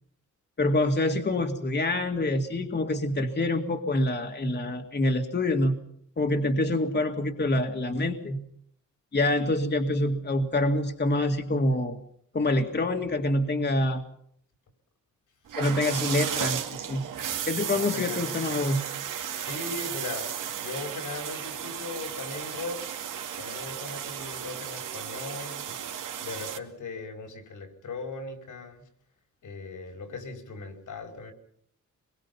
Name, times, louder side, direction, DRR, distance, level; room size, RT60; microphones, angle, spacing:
voice 1, 0.6-5.8 6.2-8.4 9.1-12.0 12.3-14.0 15.6-17.0 17.5-18.9, left 1 dB, 35° left, 5 dB, 2.2 m, -26 dB
sound 1, 15.5-26.6, right 9 dB, 90° right, 2.5 m, -34 dB
voice 2, 17.8-18.2 19.4-23.0 23.4-25.7 26.2-28.9 29.4-31.3, left 3 dB, 75° left, 5 dB, 5.5 m, -39 dB
27.0 x 22.5 x 5.6 m, 0.68 s
cardioid pair, 110°, 31 cm